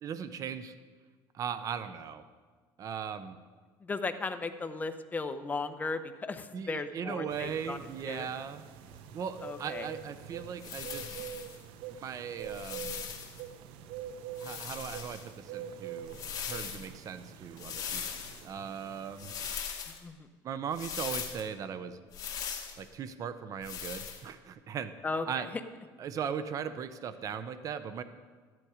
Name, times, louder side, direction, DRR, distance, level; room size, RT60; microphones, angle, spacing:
voice 1, 0.0-0.7 1.3-2.2 2.8-3.4 6.5-8.6 9.1-11.2 11.9-13.0 14.4-18.0 18.4-19.3 20.4-22.0 22.8-24.9 25.3-25.5 26.0-28.0, right 7 dB, 40° right, 12 dB, 0.7 m, -38 dB
voice 2, 3.8-7.8 8.1-8.3 9.4-9.9 20.0-20.1 25.0-25.5, left 3 dB, 20° left, 9 dB, 0.8 m, -36 dB
sound 1, 7.3-19.6, right 9 dB, 80° right, 0.9 m, -45 dB
sound 2, 10.6-11.6 12.4-13.4 14.4-15.3 16.1-16.9 17.6-18.4 19.2-20.0 20.7-21.4 22.1-22.8 23.6-24.2, left 8 dB, 45° left, 2.0 m, -39 dB
14.0 x 11.0 x 5.0 m, 1.5 s
cardioid pair, 130°, 9 cm